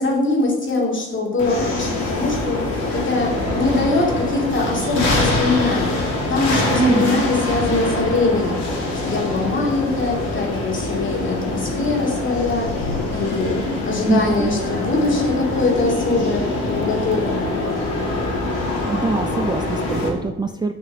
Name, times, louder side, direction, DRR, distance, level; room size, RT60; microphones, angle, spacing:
voice 1, 0.0-2.6 2.9-17.6, left 3 dB, 40° left, -2 dB, 2.6 m, -22 dB
sound 1, 1.4-20.1, left 2 dB, 65° left, 2.7 m, -24 dB
voice 2, 6.8-7.3 14.0-14.6 18.8-20.7, right 4 dB, 15° right, 6 dB, 0.4 m, -23 dB
11.5 x 5.9 x 3.6 m, 1.2 s
cardioid pair, 90°, 30 cm